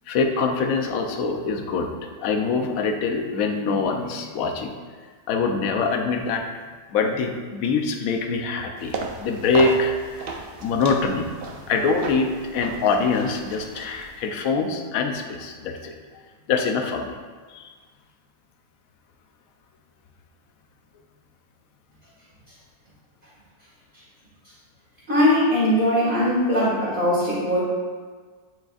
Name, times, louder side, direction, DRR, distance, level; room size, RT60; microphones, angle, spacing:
voice 1, 0.1-1.9 2.2-4.7 5.3-6.5 6.9-15.9 16.5-17.2 17.5-17.7, left 4 dB, 70° left, 4 dB, 1.1 m, -24 dB
sound 1, 8.8-14.4, right 4 dB, 55° right, 0.7 m, -35 dB
voice 2, 25.1-27.6, left 1 dB, 35° right, -10 dB, 2.0 m, -20 dB
9.4 x 5.0 x 2.4 m, 1.5 s
omnidirectional pair, 1.6 m